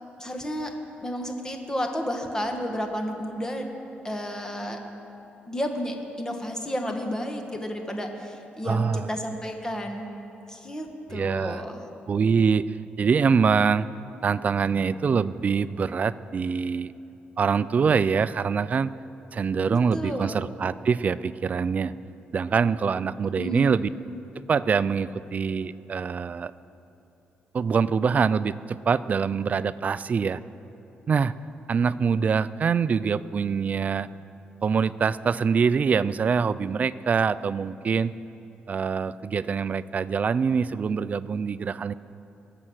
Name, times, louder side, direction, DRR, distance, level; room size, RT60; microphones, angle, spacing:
voice 1, 0.2-0.7 1.0-3.6 4.0-4.8 5.5-10.1 10.5-11.8 19.7-20.4 23.4-23.8, equal, 15° left, 4 dB, 1.6 m, -31 dB
voice 2, 8.7-9.1 11.1-11.6 12.1-13.9 14.2-16.9 17.4-18.9 19.3-21.9 22.3-23.9 24.5-26.5 27.5-30.4 31.1-31.4 31.7-34.1 34.6-38.1 38.7-41.9, right 6 dB, 40° right, 16 dB, 0.3 m, -24 dB
21.5 x 7.7 x 6.4 m, 2.9 s
cardioid pair, 100°, 4 cm